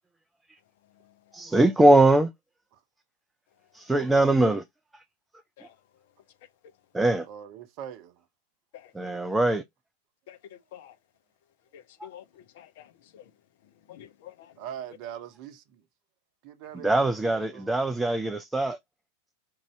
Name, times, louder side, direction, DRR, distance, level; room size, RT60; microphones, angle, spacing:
voice 1, 0.8-1.4 5.6-5.8 8.7-9.2 10.3-11.0 11.7-13.3 13.6-14.6, left 10 dB, 50° left, 0.5 m, -50 dB
voice 2, 1.3-2.3 3.7-4.6 6.9-7.2 9.0-9.6 16.8-18.8, right 2 dB, 5° right, 0.4 m, -21 dB
voice 3, 7.2-8.2 14.6-15.8 16.4-17.8, right 10 dB, 45° right, 0.7 m, -42 dB
4.5 x 2.6 x 3.0 m
figure-of-eight pair, 90°, 0 cm